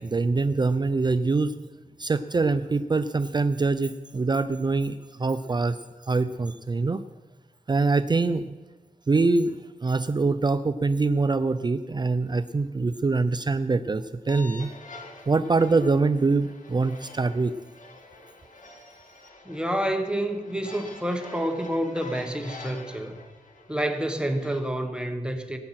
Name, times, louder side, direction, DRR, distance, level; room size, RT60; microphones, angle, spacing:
voice 1, 0.0-1.5 2.0-5.8 6.1-7.0 7.7-8.4 9.1-9.5 9.8-14.7 15.3-17.5, right 3 dB, 30° right, 11 dB, 0.5 m, -24 dB
sound 1, 14.3-24.6, left 3 dB, 65° left, 2.0 m, -46 dB
voice 2, 19.5-23.2 23.7-25.6, right 1 dB, 5° right, 5 dB, 1.1 m, -28 dB
19.0 x 8.8 x 5.8 m, 1.3 s
wide cardioid pair, 115°, 14 cm